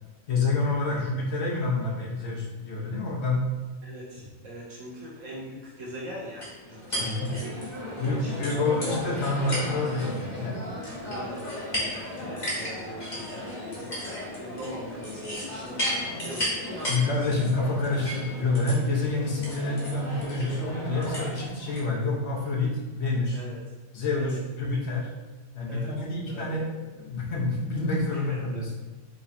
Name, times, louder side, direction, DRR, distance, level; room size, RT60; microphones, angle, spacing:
voice 1, 0.3-3.5 7.0-7.3 8.0-10.6 16.9-23.4 23.9-25.1 25.5-28.7, left 2 dB, 60° left, -2 dB, 1.0 m, -28 dB
voice 2, 3.8-7.1 7.8-8.7 10.9-17.2 23.3-23.6 24.2-24.4 25.7-26.6 28.1-28.8, equal, 75° right, -5 dB, 1.7 m, -42 dB
sound 1, 6.4-21.8, left 1 dB, 35° left, 1.3 m, -34 dB
5.0 x 3.0 x 2.5 m, 1.2 s
omnidirectional pair, 1.3 m